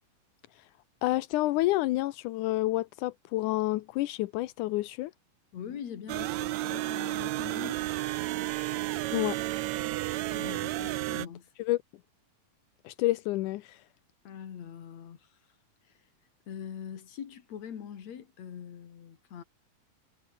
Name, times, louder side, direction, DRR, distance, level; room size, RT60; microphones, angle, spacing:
voice 1, 0.5-5.1 9.1-9.4 11.6-11.8 12.8-13.9, left 17 dB, 75° left, 2.0 m, -29 dB
voice 2, 5.5-7.8 10.3-11.5 14.2-15.3 15.9-16.0 16.5-19.4, left 8 dB, 50° left, 3.2 m, -43 dB
sound 1, 6.1-11.3, right 16 dB, 85° right, 1.6 m, -32 dB
omnidirectional pair, 4.1 m